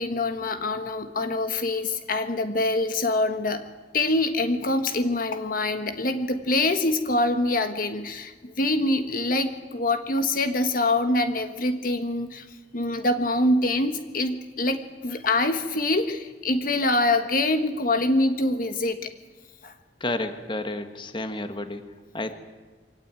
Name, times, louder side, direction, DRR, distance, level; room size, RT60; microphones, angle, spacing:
voice 1, 0.0-3.6 3.9-12.5 12.7-19.1 19.6-19.7, left 2 dB, 50° left, 8 dB, 1.4 m, -25 dB
voice 2, 20.0-21.8 22.1-22.3, left 2 dB, 30° left, 8 dB, 1.5 m, -30 dB
23.5 x 18.0 x 9.1 m, 1.4 s
head